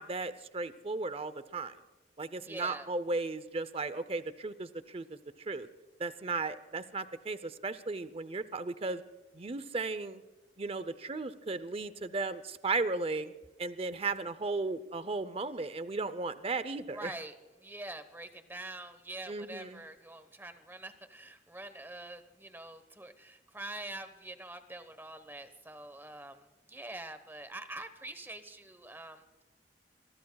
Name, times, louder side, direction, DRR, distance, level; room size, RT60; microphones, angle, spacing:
voice 1, 0.0-1.7 2.2-5.7 6.0-9.0 9.3-10.2 10.6-13.3 13.6-17.1 19.3-19.8, right 3 dB, 35° right, 14 dB, 0.6 m, -35 dB
voice 2, 2.3-2.9 16.9-29.4, right 2 dB, 10° right, 10 dB, 1.1 m, -45 dB
26.0 x 22.5 x 2.3 m, 1.2 s
head